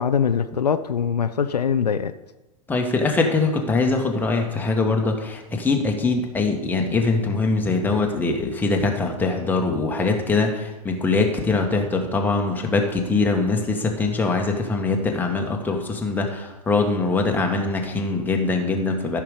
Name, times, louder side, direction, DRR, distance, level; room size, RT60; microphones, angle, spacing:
voice 1, 0.0-2.1, left 7 dB, 75° left, 10 dB, 0.6 m, -22 dB
voice 2, 2.7-19.2, left 3 dB, 10° left, 2 dB, 1.5 m, -22 dB
14.0 x 6.0 x 5.1 m, 1.1 s
figure-of-eight pair, 100°, 21 cm